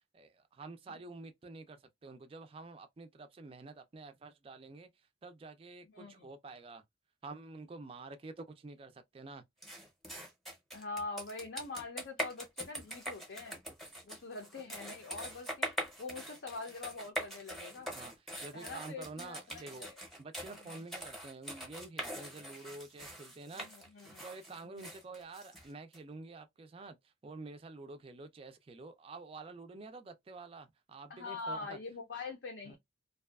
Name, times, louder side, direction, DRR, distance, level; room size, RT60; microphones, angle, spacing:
voice 1, 0.1-4.9 5.2-6.8 7.2-9.4 18.0-19.9 20.2-23.7 24.2-27.0 27.2-31.8 32.7-32.8, right 3 dB, 30° right, 0.3 m, -49 dB
voice 2, 5.9-6.3 10.7-13.6 14.0-15.7 16.0-18.0 18.5-20.0 20.6-20.7 23.5-24.2 24.6-24.9 31.1-32.8, left 3 dB, 65° left, 0.6 m, -44 dB
sound 1, 9.6-26.0, equal, ahead, 0.7 m, -43 dB
2.6 x 2.2 x 2.3 m
head